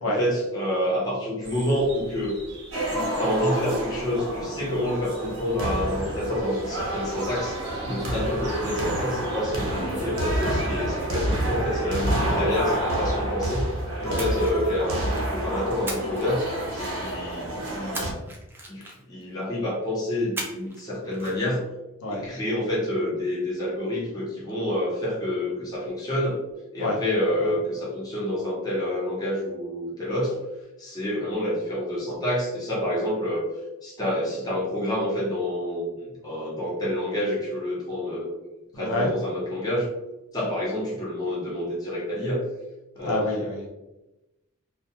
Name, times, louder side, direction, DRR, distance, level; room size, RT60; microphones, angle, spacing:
voice 1, 0.0-2.3 2.9-7.6 7.8-13.7 14.0-18.1 18.7-21.7 22.1-26.4 26.7-30.4 30.8-33.5 33.8-38.3 38.7-39.9 40.3-42.5 43.0-43.3, left 1 dB, 20° left, -6 dB, 0.7 m, -28 dB
sound 1, 1.4-9.8, right 2 dB, 55° right, 0.6 m, -45 dB
sound 2, 2.7-18.1, right 1 dB, 85° right, 0.7 m, -28 dB
Splash splatter, 14.2-15.3 15.9-17.0 17.9-19.2 20.4-20.8 21.1-21.3, right 2 dB, 10° right, 0.3 m, -37 dB
voice 2, 38.7-39.1 43.0-43.7, left 1 dB, 90° left, -3 dB, 0.7 m, -28 dB
2.2 x 2.2 x 2.8 m, 0.99 s
head